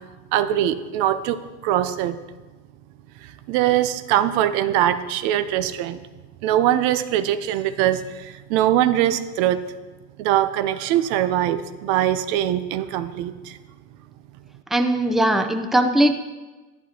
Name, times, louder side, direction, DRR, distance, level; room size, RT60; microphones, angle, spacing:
voice 1, 0.3-2.2 3.2-6.0 6.4-9.6 10.2-13.6, right 12 dB, 85° right, 12 dB, 0.6 m, -22 dB
voice 2, 14.7-16.2, right 1 dB, ahead, 6 dB, 0.5 m, -19 dB
11.0 x 9.1 x 2.9 m, 1.2 s
supercardioid pair, 110°, 32 cm